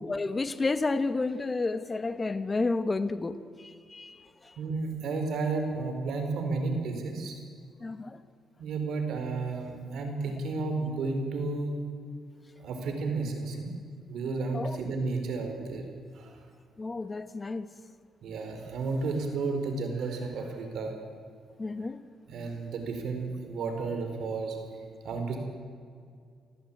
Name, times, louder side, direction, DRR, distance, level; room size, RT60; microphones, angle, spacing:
voice 1, 0.0-4.6 7.8-8.2 14.5-14.8 16.8-17.7 21.6-22.0, left 3 dB, 25° left, 12 dB, 1.2 m, -31 dB
voice 2, 4.6-7.4 8.6-11.8 12.6-13.7 14.1-15.8 16.1-16.4 18.2-20.9 22.3-24.6 25.0-25.4, right 3 dB, 70° right, 5 dB, 4.5 m, -32 dB
23.5 x 14.5 x 8.7 m, 2.3 s
cardioid pair, 90°, 0 cm